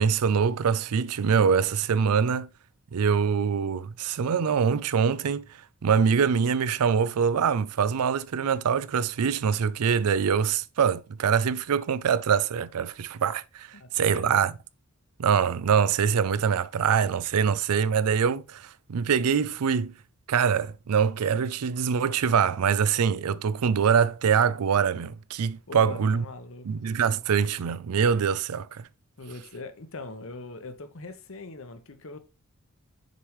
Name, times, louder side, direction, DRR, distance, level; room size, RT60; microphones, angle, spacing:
voice 1, 0.0-2.5 2.9-14.5 15.2-19.9 20.3-26.2 26.6-28.9, right 6 dB, 85° right, 0.4 m, -24 dB
voice 2, 13.7-14.4 25.7-26.9 29.2-32.2, left 3 dB, 60° left, 0.9 m, -41 dB
6.7 x 4.7 x 3.1 m
head